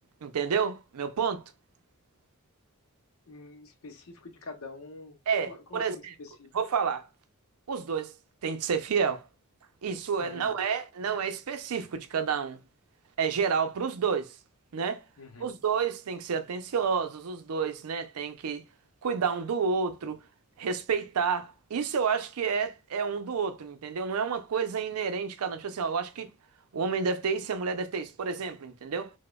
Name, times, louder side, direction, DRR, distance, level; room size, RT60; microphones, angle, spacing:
voice 1, 0.2-1.4 5.3-6.1 6.5-7.1 7.7-8.1 8.4-9.2 9.8-12.6 13.2-14.4 14.7-15.0 15.4-18.6 19.0-20.2 20.6-26.3 26.7-29.1, right 6 dB, 90° right, 0.5 m, -30 dB
voice 2, 3.3-6.5 10.2-10.6 15.2-15.6, left 3 dB, 75° left, 0.7 m, -46 dB
4.9 x 2.1 x 2.2 m
head